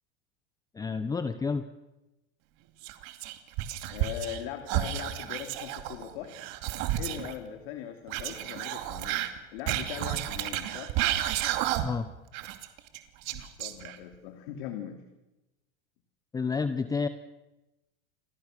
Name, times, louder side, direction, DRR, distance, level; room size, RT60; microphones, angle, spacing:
voice 1, 0.7-1.6 11.8-12.1 16.3-17.1, left 5 dB, 10° left, 11 dB, 0.8 m, -29 dB
Whispering, 2.8-4.4 4.7-7.3 8.1-12.1 12.3-14.1, right 13 dB, 55° right, 2.5 m, -32 dB
voice 2, 3.9-6.4 7.0-9.2 9.5-10.9 13.3-15.0, left 10 dB, 65° left, 5 dB, 2.9 m, -40 dB
29.0 x 21.5 x 6.6 m, 1.0 s
supercardioid pair, 140°, 30 cm